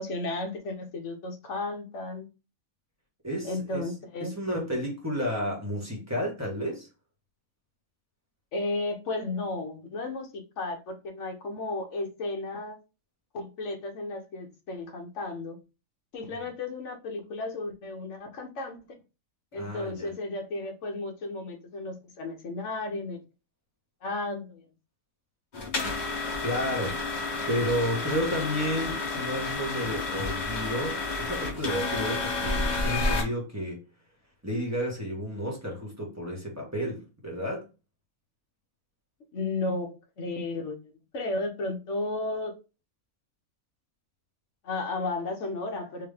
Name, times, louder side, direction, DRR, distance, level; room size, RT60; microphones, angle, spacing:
voice 1, 0.0-2.3 3.4-4.3 8.5-12.8 13.3-15.6 16.1-19.0 19.5-23.2 24.0-24.7 39.3-42.5 44.6-46.1, left 2 dB, 60° left, 1.2 m, -34 dB
voice 2, 3.2-3.9 4.2-6.9 19.5-20.1 26.4-27.0 27.5-33.8 34.4-37.7, equal, 10° right, 1.4 m, -31 dB
sound 1, 25.5-33.2, left 3 dB, 35° left, 0.9 m, -30 dB
3.6 x 3.2 x 3.3 m
omnidirectional pair, 1.5 m